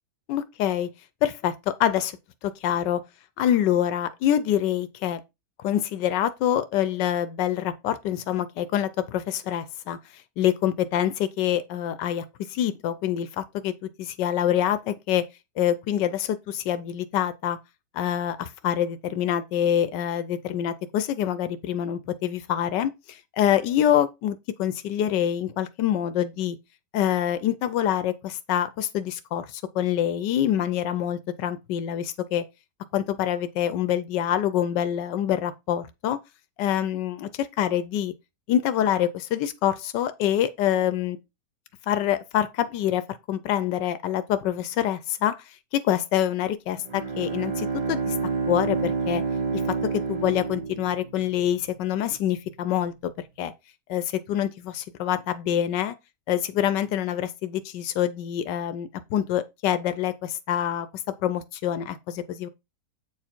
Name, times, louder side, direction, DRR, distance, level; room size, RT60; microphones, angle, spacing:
voice 1, 0.3-0.9 1.2-2.2 2.4-3.0 3.4-5.2 5.6-10.0 10.4-15.2 15.6-17.6 17.9-26.6 26.9-32.4 32.9-36.2 36.6-38.1 38.5-41.2 41.9-43.0 43.3-45.3 45.7-48.1 48.5-49.2 49.5-49.6 49.9-53.1 53.4-53.5 53.9-55.9 56.3-60.9 61.2-62.5, left 10 dB, 85° left, 1.3 m, -26 dB
Bowed string instrument, 46.8-51.5, right 4 dB, 45° right, 0.5 m, -29 dB
8.2 x 4.8 x 4.4 m
omnidirectional pair, 1.8 m